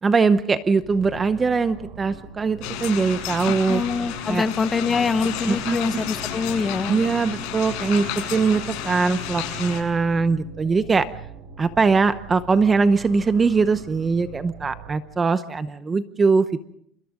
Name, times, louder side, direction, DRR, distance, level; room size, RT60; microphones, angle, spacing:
voice 1, 0.0-3.8 4.3-4.4 5.5-5.8 6.9-11.1 11.6-16.6, right 4 dB, 20° right, 12 dB, 0.8 m, -21 dB
sound 1, 0.8-15.0, right 8 dB, 65° right, 5.2 m, -42 dB
sound 2, 2.6-9.8, left 10 dB, 70° left, 7.3 m, -32 dB
voice 2, 3.4-7.0, left 4 dB, 20° left, 10 dB, 1.3 m, -24 dB
29.0 x 28.0 x 3.8 m, 0.68 s
cardioid pair, 150°, 0 cm